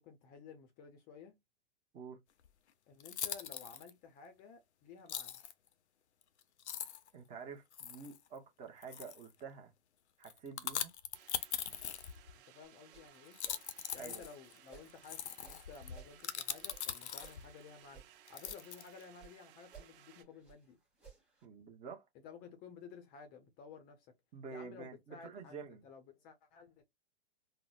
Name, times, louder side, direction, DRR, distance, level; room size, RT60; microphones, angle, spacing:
voice 1, 0.0-1.4 2.9-5.4 12.5-13.4 13.9-18.0 18.3-20.8 22.2-24.1 24.5-26.8, left 6 dB, 25° left, 0.5 m, -54 dB
sound 1, 2.4-2.5 3.0-3.9 5.1-5.5 6.2-6.3 6.6-7.1 7.7-8.2 8.8-9.3 10.2-12.4 13.3-17.5 18.3-19.0, left 9 dB, 90° left, 0.6 m, -41 dB
voice 2, 7.1-9.7 10.2-10.9 14.0-14.2 21.4-22.1 24.3-25.8, right 5 dB, 20° right, 0.8 m, -48 dB
sound 2, 11.1-20.2, right 11 dB, 50° right, 1.1 m, -61 dB
sound 3, 12.6-14.9 15.3-18.1 18.4-19.4 19.6-21.5, right 6 dB, 5° right, 1.1 m, -59 dB
3.9 x 2.0 x 2.4 m
hypercardioid pair, 125°, 33 cm